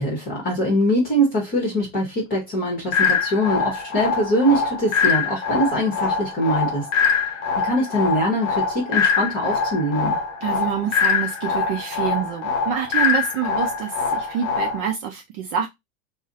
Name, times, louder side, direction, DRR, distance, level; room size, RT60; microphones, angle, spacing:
voice 1, 0.0-6.9 7.1-7.3 7.6-10.2, equal, 20° left, 0.9 m, -23 dB
sound 1, 2.9-14.9, left 5 dB, 80° left, 0.8 m, -23 dB
voice 2, 10.4-15.7, right 8 dB, 35° right, 0.4 m, -26 dB
2.5 x 2.1 x 3.9 m
supercardioid pair, 145°, 41 cm